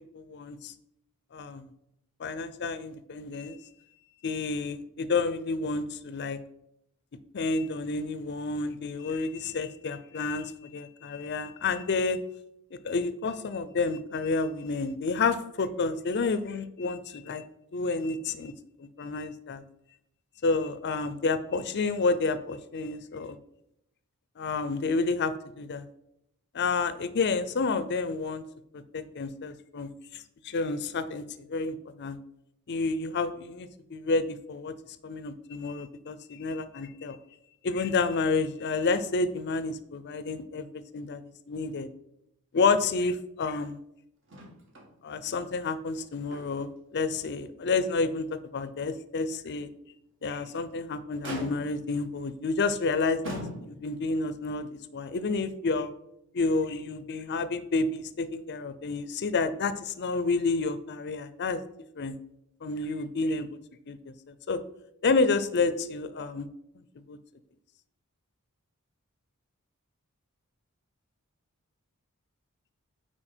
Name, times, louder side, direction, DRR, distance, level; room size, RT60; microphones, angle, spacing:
voice 1, 0.1-0.7 1.3-1.7 2.2-3.6 4.2-6.4 7.3-12.2 12.7-17.4 17.7-18.5 18.8-19.6 20.4-23.4 24.4-25.9 26.5-28.4 28.7-32.2 32.7-34.7 35.0-37.2 37.6-40.7 40.9-41.9 42.5-43.8 45.0-49.7 50.2-55.9 56.3-61.6 62.0-62.2 62.6-63.5 63.9-64.6 65.0-66.5 67.1-67.2, left 3 dB, 50° left, 13 dB, 0.5 m, -30 dB
Motor vehicle (road), 44.3-44.9 45.2-45.3 45.9-46.8 47.2-47.4 47.9-48.0 50.2-50.7 51.2-51.9 52.7-52.8 53.2-54.0 55.1-55.2, equal, 60° right, 1.9 m, -41 dB
8.9 x 4.5 x 4.4 m, 0.80 s
head